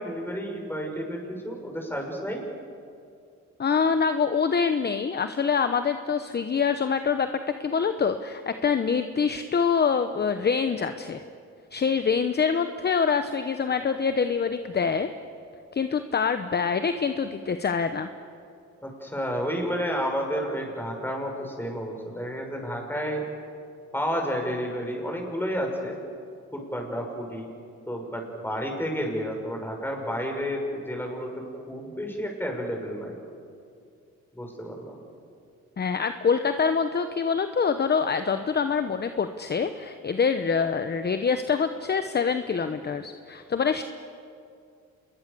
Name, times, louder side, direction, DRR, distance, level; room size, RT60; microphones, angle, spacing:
voice 1, 0.0-2.4 18.8-23.2 23.9-26.0 26.5-27.5 27.9-31.3 31.7-33.2 34.3-35.0, equal, 5° left, 1 dB, 6.1 m, -31 dB
voice 2, 3.6-7.3 7.6-11.2 11.7-15.1 15.7-18.1 35.8-43.8, left 6 dB, 35° left, 9 dB, 1.0 m, -25 dB
27.5 x 21.5 x 6.9 m, 2.4 s
cardioid pair, 90°, 30 cm